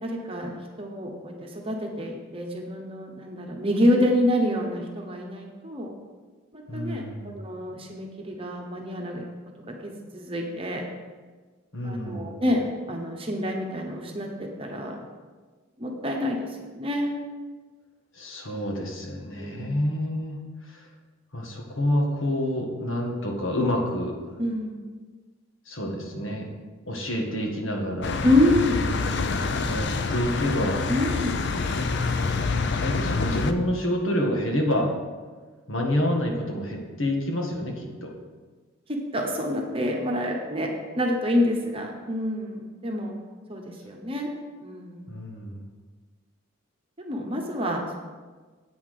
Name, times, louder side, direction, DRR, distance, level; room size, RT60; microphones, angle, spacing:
voice 1, 0.0-5.9 6.5-9.2 9.7-10.8 11.8-15.0 15.8-16.5 16.8-17.2 19.3-19.7 24.4-24.8 28.2-28.9 30.9-31.4 38.9-40.7 41.0-43.1 43.5-44.3 44.6-45.1 47.0-47.9, left 1 dB, 25° right, 1 dB, 1.1 m, -27 dB
voice 2, 6.7-7.4 11.7-12.4 18.1-20.4 20.7-20.9 21.3-24.1 25.7-26.5 26.9-28.2 29.6-30.8 32.7-34.9 35.7-38.1 45.1-45.6, left 1 dB, 70° left, 0 dB, 1.7 m, -28 dB
sound 1, 28.0-33.5, left 4 dB, 55° left, 0.5 m, -26 dB
8.6 x 5.8 x 6.5 m, 1.4 s
head